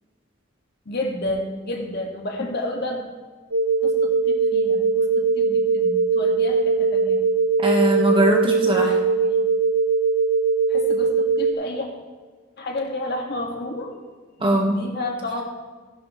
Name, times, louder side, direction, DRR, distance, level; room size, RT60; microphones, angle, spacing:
voice 1, 0.9-3.0 3.8-7.2 8.7-9.5 10.7-11.9 12.6-13.9 14.4-15.4, left 1 dB, 50° left, 1 dB, 2.0 m, -31 dB
sound 1, 3.5-11.5, right 4 dB, 75° right, 1.3 m, -20 dB
voice 2, 7.6-8.9 14.4-14.8, right 1 dB, 25° right, 0 dB, 1.5 m, -20 dB
16.0 x 11.0 x 3.3 m, 1.4 s
head